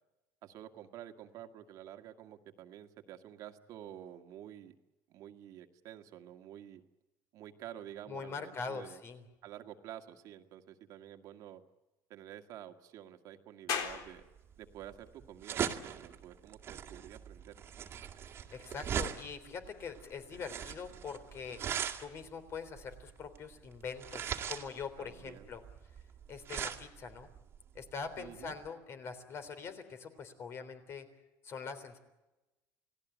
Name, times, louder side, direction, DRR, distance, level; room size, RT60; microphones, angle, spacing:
voice 1, 0.4-4.7 5.1-6.8 7.3-9.0 9.4-11.6 12.1-14.2 14.6-17.6 25.0-25.5 28.2-28.5, right 11 dB, 60° right, 6 dB, 1.9 m, -50 dB
voice 2, 8.1-9.2 18.5-21.6 22.0-25.6 26.3-27.3 27.7-31.1 31.4-32.0, left 5 dB, 40° left, 10 dB, 3.6 m, -43 dB
sound 1, 13.7-26.8, left 7 dB, 70° left, 3.9 m, -49 dB
sound 2, 13.9-28.7, right 8 dB, 35° right, 2.1 m, -40 dB
29.5 x 18.5 x 8.1 m, 1.0 s
cardioid pair, 150°, 7 cm